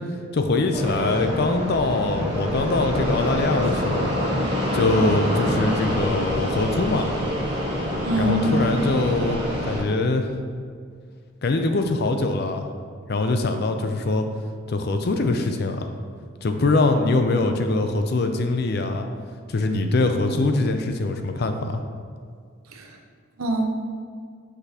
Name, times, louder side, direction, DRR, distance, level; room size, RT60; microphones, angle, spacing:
voice 1, 0.3-4.1 4.7-7.1 8.2-10.3 11.4-12.7 13.1-14.2 14.7-15.9 16.4-19.1 19.5-21.8, left 2 dB, 50° left, 6 dB, 0.4 m, -23 dB
Fixed-wing aircraft airplane, 0.7-9.8, equal, 25° right, 1.4 m, -26 dB
voice 2, 8.0-9.0 22.7-23.0 23.4-23.7, right 1 dB, 85° right, 3 dB, 0.7 m, -24 dB
6.0 x 5.5 x 2.9 m, 2.1 s
head